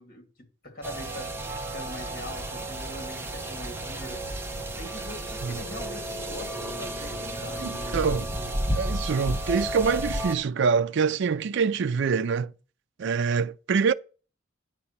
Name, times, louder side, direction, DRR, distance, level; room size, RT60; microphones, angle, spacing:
voice 1, 0.0-1.4 1.7-4.3 4.8-7.7, left 1 dB, 50° left, 2.4 m, -42 dB
sound 1, 0.8-10.3, right 1 dB, 10° right, 1.3 m, -32 dB
voice 2, 7.6-8.3 8.8-12.5 13.0-13.9, right 5 dB, 65° right, 0.4 m, -25 dB
9.6 x 4.2 x 7.1 m
head